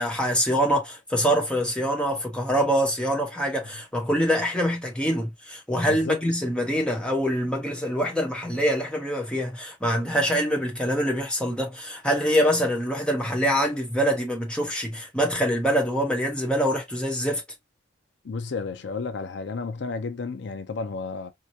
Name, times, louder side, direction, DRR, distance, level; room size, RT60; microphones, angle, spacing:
voice 1, 0.0-17.4, equal, 5° left, 1.0 m, -25 dB
voice 2, 5.8-6.2 18.2-21.3, left 4 dB, 70° left, 0.5 m, -32 dB
4.7 x 2.2 x 2.7 m
head